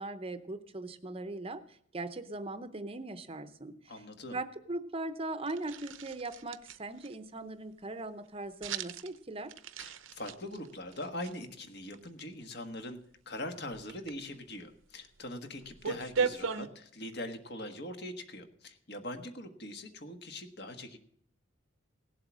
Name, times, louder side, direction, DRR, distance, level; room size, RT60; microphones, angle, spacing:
voice 1, 0.0-1.6 1.9-3.7 4.3-9.5, right 2 dB, 30° right, 11 dB, 0.7 m, -39 dB
voice 2, 3.9-4.4 9.8-13.0 13.2-21.0, left 1 dB, 55° left, 6 dB, 1.5 m, -42 dB
sound 1, 5.5-7.1 8.6-9.2 9.5-11.3 11.9-12.2 13.7-14.2 15.0-15.1 15.4-16.7, right 5 dB, 75° right, 0.7 m, -36 dB
17.0 x 7.7 x 6.2 m, 0.67 s
head